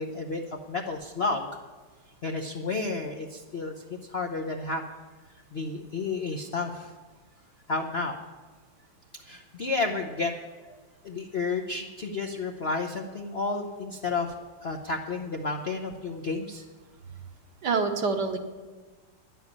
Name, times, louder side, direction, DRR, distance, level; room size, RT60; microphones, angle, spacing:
voice 1, 0.0-1.5 2.2-3.7 4.1-4.8 5.5-6.9 7.7-8.2 9.3-10.3 10.6-10.8 11.0-14.3 14.6-16.6, left 3 dB, 55° left, 2 dB, 0.7 m, -31 dB
voice 2, 17.6-18.4, right 4 dB, 60° right, 6 dB, 1.5 m, -26 dB
10.5 x 8.0 x 9.6 m, 1.3 s
omnidirectional pair, 2.2 m